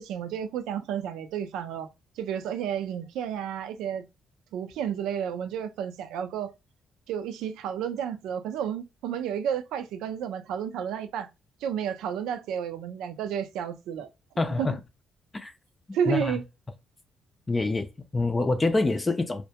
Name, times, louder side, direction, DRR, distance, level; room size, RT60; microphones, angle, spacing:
voice 1, 0.0-1.9 2.2-4.0 4.5-6.5 7.1-11.3 11.6-14.1 14.6-14.7 15.9-16.4, right 8 dB, 90° right, 0.4 m, -31 dB
voice 2, 14.4-14.8 15.3-15.5 16.1-16.4 17.5-19.5, left 3 dB, 25° left, 0.4 m, -26 dB
2.2 x 2.1 x 2.8 m
cardioid pair, 90°, 0 cm